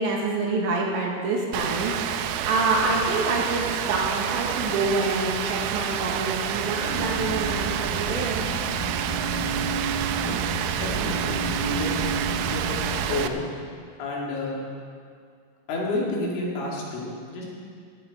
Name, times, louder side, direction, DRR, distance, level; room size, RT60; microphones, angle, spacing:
voice 1, 0.0-8.4, right 3 dB, 65° right, -2 dB, 4.0 m, -27 dB
Rain, 1.5-13.3, right 9 dB, 85° right, 3.2 m, -29 dB
sound 1, 6.8-13.1, right 3 dB, 45° right, 3.8 m, -31 dB
voice 2, 10.8-12.0 12.5-12.8 13.1-13.4 14.0-14.6 15.7-17.5, left 2 dB, 75° left, -4 dB, 5.1 m, -30 dB
17.5 x 16.0 x 4.3 m, 2.2 s
omnidirectional pair, 5.8 m